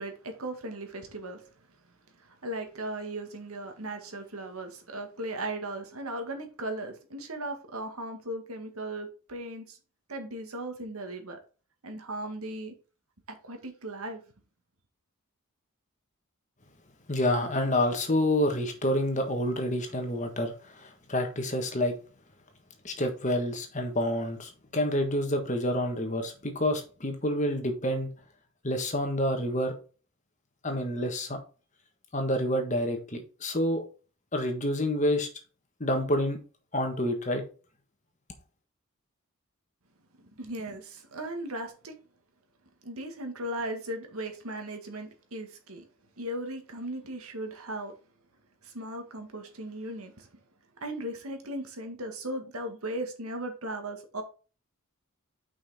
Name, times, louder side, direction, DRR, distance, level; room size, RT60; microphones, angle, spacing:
voice 1, 0.0-1.5 2.2-9.8 10.1-11.4 11.8-12.8 13.4-14.2 40.2-41.9 42.8-45.9 46.2-47.9 48.6-50.4 50.8-54.2, right 1 dB, 80° right, 1.9 m, -37 dB
voice 2, 17.1-21.9 22.8-28.1 28.6-29.8 30.6-31.4 32.1-33.8 34.3-35.3 35.8-36.4 36.7-37.4, left 1 dB, 35° left, 1.5 m, -28 dB
5.9 x 5.6 x 4.2 m
head